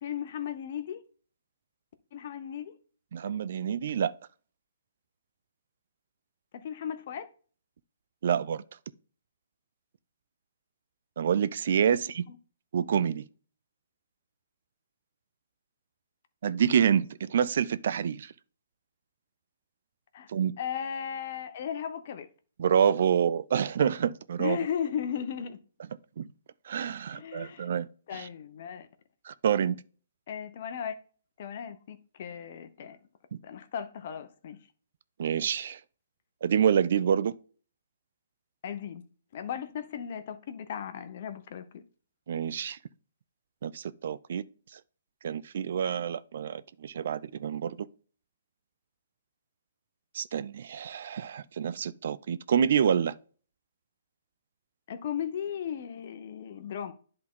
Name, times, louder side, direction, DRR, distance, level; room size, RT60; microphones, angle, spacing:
voice 1, 0.0-1.0 2.1-2.7 6.5-7.3 11.9-12.0 12.3-12.4 20.1-20.3 20.6-22.3 24.4-25.6 27.1-27.7 28.1-28.9 30.3-31.0 31.4-33.0 33.4-34.6 38.6-39.0 39.3-41.8 54.9-56.9, left 8 dB, 50° left, 0.9 m, -36 dB
voice 2, 3.1-4.1 8.2-8.6 11.2-12.3 12.7-13.2 16.4-18.3 20.3-20.5 22.6-24.6 26.2-26.3 26.7-27.9 28.1-28.3 29.3-29.8 35.2-35.8 36.4-37.3 42.3-42.8 43.6-44.4 44.7-44.8 45.2-47.9 50.1-53.1, right 8 dB, 60° right, 0.5 m, -27 dB
10.5 x 3.9 x 3.8 m
hypercardioid pair, 135°, 0 cm